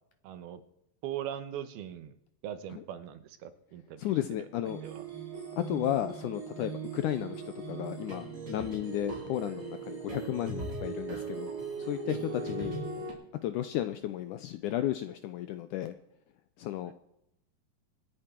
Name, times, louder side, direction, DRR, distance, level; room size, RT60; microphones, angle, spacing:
voice 1, 0.2-0.6 1.0-2.2 2.4-5.0 12.4-12.5 16.8-16.9, right 10 dB, 85° right, 11 dB, 3.0 m, -41 dB
voice 2, 4.0-4.8 5.6-7.4 7.7-11.5 11.8-12.8 13.4-15.9 16.6-16.9, left 12 dB, 80° left, 11 dB, 1.8 m, -33 dB
sound 1, 4.6-13.1, right 4 dB, 20° right, 4.0 m, -39 dB
26.5 x 8.9 x 4.5 m, 0.81 s
omnidirectional pair, 4.3 m